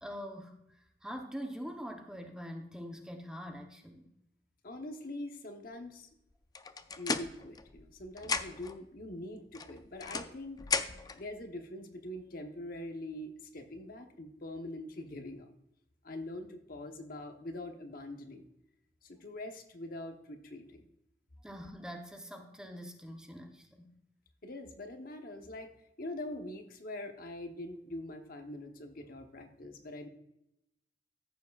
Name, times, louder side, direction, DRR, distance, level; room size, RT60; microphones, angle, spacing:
voice 1, 0.0-4.1 21.4-23.9, equal, 5° right, 3 dB, 0.8 m, -44 dB
voice 2, 4.6-6.1 7.0-10.6 11.1-15.5 16.0-18.5 19.0-20.9 24.4-25.7 26.0-30.1, left 1 dB, 55° left, 5 dB, 1.0 m, -43 dB
sound 1, 6.5-8.8 9.5-11.2, left 4 dB, 20° left, 0.4 m, -35 dB
15.0 x 7.0 x 2.4 m, 0.84 s
head